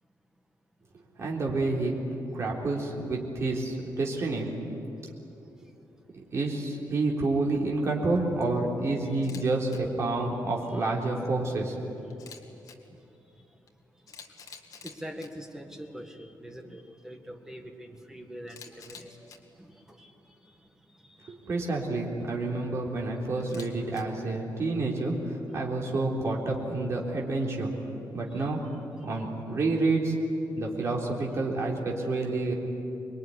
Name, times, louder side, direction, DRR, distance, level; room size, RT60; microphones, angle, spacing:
voice 1, 1.2-2.0 2.3-4.5 6.1-11.8 21.3-25.1 25.5-27.7 28.1-28.6 29.0-30.2 30.6-32.5, right 2 dB, 40° right, -2 dB, 3.7 m, -29 dB
Camera, 9.1-9.4 9.7-9.8 12.1-12.7 13.7-13.8 14.1-15.3 18.5-19.4 23.4-24.0, left 6 dB, 55° left, 2.1 m, -47 dB
voice 2, 14.8-21.5 28.3-28.5 29.0-29.1, equal, 5° right, 4 dB, 1.7 m, -45 dB
25.5 x 22.0 x 10.0 m, 2.9 s
wide cardioid pair, 175°, 7 cm